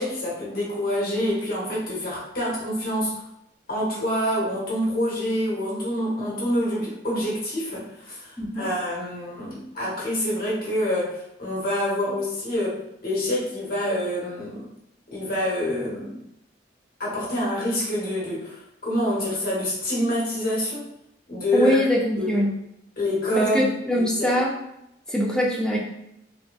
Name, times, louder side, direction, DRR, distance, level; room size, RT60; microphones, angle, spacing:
voice 1, 0.0-3.2 3.7-14.7 15.1-16.2 17.0-20.9 21.3-21.8 22.2-22.5 23.0-23.6 23.9-24.3, equal, 50° left, -6 dB, 0.9 m, -26 dB
voice 2, 21.5-22.5 23.4-24.5 25.1-25.8, equal, 5° left, -3 dB, 0.4 m, -22 dB
2.6 x 2.1 x 2.2 m, 0.80 s
head